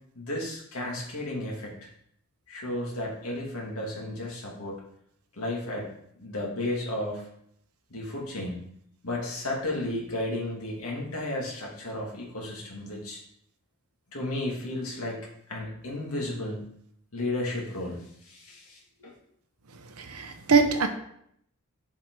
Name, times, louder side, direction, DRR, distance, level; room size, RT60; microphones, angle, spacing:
voice 1, 0.2-1.8 2.5-4.8 5.3-5.9 6.2-7.3 7.9-8.6 9.0-13.2 14.1-15.2 15.5-16.7 17.1-19.1, left 1 dB, 75° left, -2 dB, 2.3 m, -33 dB
voice 2, 20.0-20.9, right 4 dB, 85° right, 6 dB, 1.0 m, -23 dB
7.0 x 4.7 x 4.7 m, 0.70 s
head